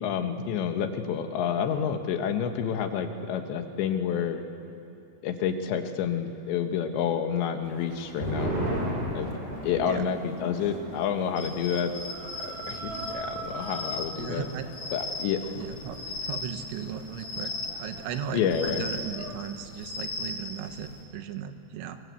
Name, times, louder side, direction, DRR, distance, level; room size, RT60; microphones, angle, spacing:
voice 1, 0.0-4.4 5.2-8.6 9.2-9.3 9.6-11.9 12.4-14.5 14.9-15.4 18.3-18.9, left 8 dB, 80° left, 7 dB, 3.5 m, -29 dB
Chicken rooster, 7.6-19.3, right 2 dB, 35° right, 1.4 m, -45 dB
sound 1, 7.6-14.5 14.8-14.9 15.3-15.8, right 1 dB, 55° right, 8.9 m, -36 dB
sound 2, 11.4-21.0, left 3 dB, 50° left, 5.6 m, -38 dB
voice 2, 14.2-14.7 15.6-22.0, right 8 dB, 80° right, 8 dB, 3.6 m, -37 dB
28.0 x 23.5 x 8.4 m, 2.8 s
omnidirectional pair, 5.2 m